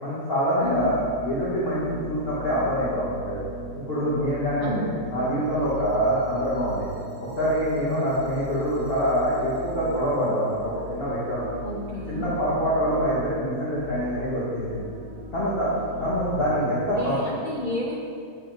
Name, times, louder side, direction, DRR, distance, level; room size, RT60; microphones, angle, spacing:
voice 1, 0.0-3.4 3.9-4.8 5.1-6.9 7.2-11.5 12.1-14.8 15.3-15.7 16.0-17.1, equal, 35° left, -9 dB, 1.3 m, -25 dB
voice 2, 0.6-0.9 4.6-5.0 11.6-12.3 16.9-18.0, left 1 dB, 75° left, -4 dB, 0.4 m, -31 dB
sound 1, 0.6-16.8, right 2 dB, 60° right, 1.5 m, -39 dB
7.1 x 5.0 x 4.5 m, 2.3 s
omnidirectional pair, 1.8 m